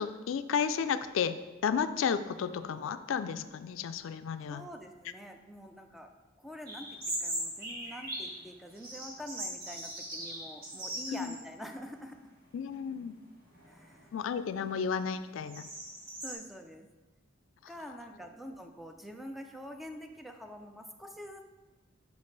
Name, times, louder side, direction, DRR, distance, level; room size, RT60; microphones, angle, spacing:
voice 1, 0.0-4.6 11.1-11.3 12.5-13.2 14.1-15.7, left 7 dB, 75° left, 12 dB, 0.3 m, -33 dB
voice 2, 4.5-6.1 6.4-12.3 13.6-14.1 14.6-14.8 16.2-16.9 17.7-21.4, equal, ahead, 4 dB, 0.4 m, -46 dB
sound 1, 6.7-8.4 8.8-11.5 11.8-11.9 12.7-13.0 13.5-16.3, right 1 dB, 50° right, 1.5 m, -40 dB
5.4 x 4.8 x 3.9 m, 1.2 s
head